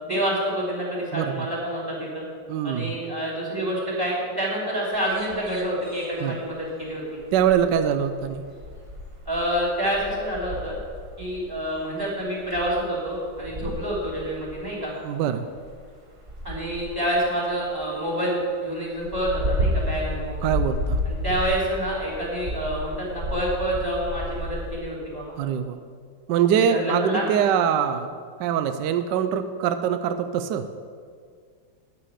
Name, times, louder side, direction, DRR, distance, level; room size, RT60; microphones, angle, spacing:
voice 1, 0.0-2.2 2.6-7.0 9.3-10.8 11.2-14.9 16.4-20.5 21.1-25.4 26.5-27.3, equal, 10° right, -4 dB, 2.9 m, -27 dB
voice 2, 1.1-1.5 2.5-2.9 6.2-6.4 7.3-8.4 15.0-15.4 20.4-21.0 25.4-25.8 26.3-30.6, right 8 dB, 75° right, 9 dB, 1.1 m, -23 dB
sound 1, 4.9-6.6 6.9-12.8 13.1-14.8 15.5-17.9 18.1-18.2 18.5-21.7 22.0-24.8, equal, 30° right, 0.6 m, -32 dB
9.7 x 5.8 x 8.0 m, 2.1 s
omnidirectional pair, 2.2 m